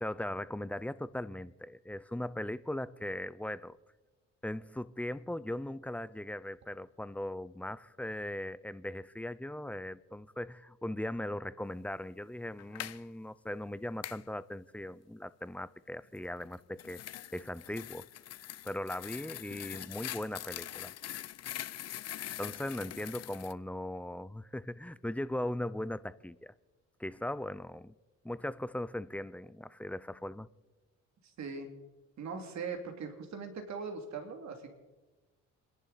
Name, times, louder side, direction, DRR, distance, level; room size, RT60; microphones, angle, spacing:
voice 1, 0.0-3.8 4.4-17.0 17.3-18.1 18.7-20.9 22.4-26.5 27.0-27.9 28.2-30.5, left 1 dB, 5° left, 0.5 m, -39 dB
sound 1, 12.6-13.0 14.0-14.2 16.4-23.5, left 13 dB, 55° left, 0.6 m, -43 dB
voice 2, 31.4-31.7 32.2-34.7, right 5 dB, 65° right, 2.7 m, -40 dB
28.0 x 11.0 x 4.1 m
cardioid pair, 90°, 30 cm